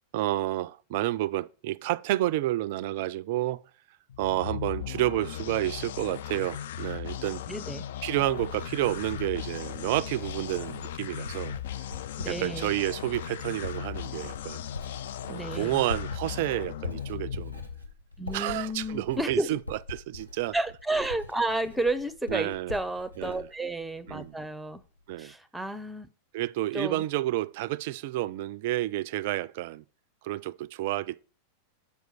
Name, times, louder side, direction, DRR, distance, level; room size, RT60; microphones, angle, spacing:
voice 1, 0.1-3.6 4.2-7.4 8.0-11.6 12.3-14.6 15.2-17.6 18.3-20.6 22.3-22.7 23.2-23.5 24.1-24.4 25.1-25.3 26.3-29.8 30.2-31.2, right 15 dB, 50° right, 0.3 m, -30 dB
sound 1, 4.1-17.9, left 10 dB, 55° left, 0.3 m, -37 dB
voice 2, 7.5-7.8 12.2-12.7 15.3-15.7 18.2-19.6 20.5-24.8 25.2-26.1 26.7-27.1, right 2 dB, 5° right, 0.6 m, -31 dB
Writing, 7.6-24.4 24.7-25.2, left 3 dB, 85° left, 1.1 m, -44 dB
6.2 x 4.7 x 6.7 m
figure-of-eight pair, 90°, 0 cm